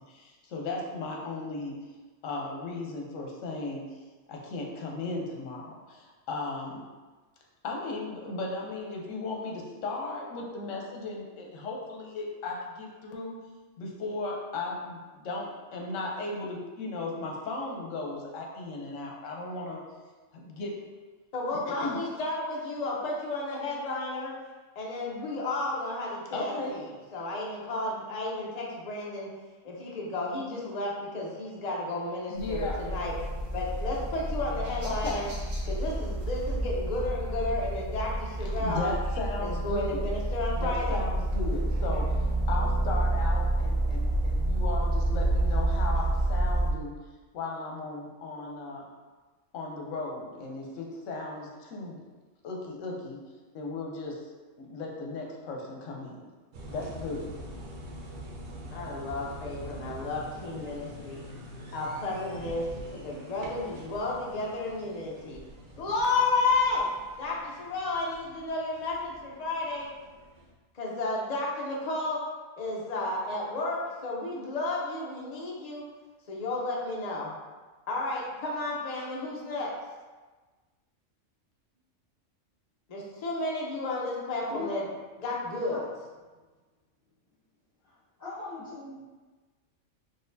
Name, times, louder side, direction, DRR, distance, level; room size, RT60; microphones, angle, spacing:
voice 1, 0.1-1.7 2.2-3.8 4.3-6.8 7.6-13.3 13.8-19.8 20.3-20.8 21.5-22.0 26.3-26.8 32.3-32.8 34.8-35.3 38.4-40.1 40.6-46.9 47.3-48.9 49.5-52.0 52.4-53.2 53.5-54.2 54.6-56.2 56.7-57.3, left 3 dB, 75° left, 0 dB, 1.1 m, -36 dB
voice 2, 21.3-24.3 24.8-29.3 29.6-33.1 33.5-35.3 35.7-38.9 39.4-41.0 58.7-61.3 61.7-62.7 62.9-65.4 65.8-66.9 67.2-69.9 70.7-72.2 72.6-75.8 76.3-77.3 77.9-79.7 82.9-84.8 85.2-85.8, left 2 dB, 40° left, -3 dB, 0.7 m, -32 dB
sound 1, 32.4-46.7, right 1 dB, 85° right, 1.3 m, -29 dB
sound 2, 56.5-70.5, equal, 50° right, 0.6 m, -45 dB
voice 3, 87.8-89.0, left 3 dB, 15° left, -14 dB, 1.1 m, -40 dB
4.0 x 3.4 x 2.6 m, 1.3 s
omnidirectional pair, 1.3 m